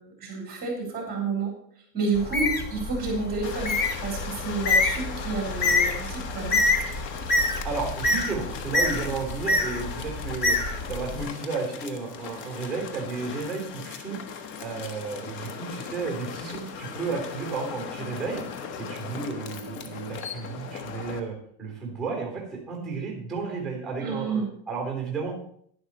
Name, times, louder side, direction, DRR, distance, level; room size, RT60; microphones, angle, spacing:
voice 1, 0.0-1.5 1.9-3.7 4.0-6.6 24.0-24.5, right 4 dB, 20° right, 0 dB, 4.0 m, -30 dB
Bird, 2.1-11.2, left 2 dB, 20° left, 0.8 m, -27 dB
sound 1, 3.4-21.2, left 6 dB, 90° left, 1.7 m, -38 dB
voice 2, 7.6-10.6 10.9-14.2 14.6-18.4 18.8-25.3, right 4 dB, ahead, -1 dB, 3.6 m, -33 dB
11.5 x 11.0 x 4.3 m, 0.64 s
supercardioid pair, 160°, 48 cm